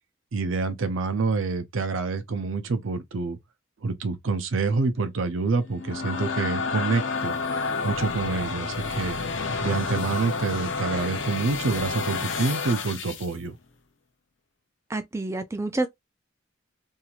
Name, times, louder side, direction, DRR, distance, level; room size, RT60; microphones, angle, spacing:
voice 1, 0.3-3.4 3.8-7.4 7.8-9.2 9.6-13.6, right 4 dB, 75° right, 0.6 m, -27 dB
sound 1, 5.6-13.3, left 4 dB, 65° left, 0.7 m, -30 dB
voice 2, 14.9-15.9, right 2 dB, 15° right, 0.3 m, -28 dB
3.0 x 2.7 x 2.4 m
head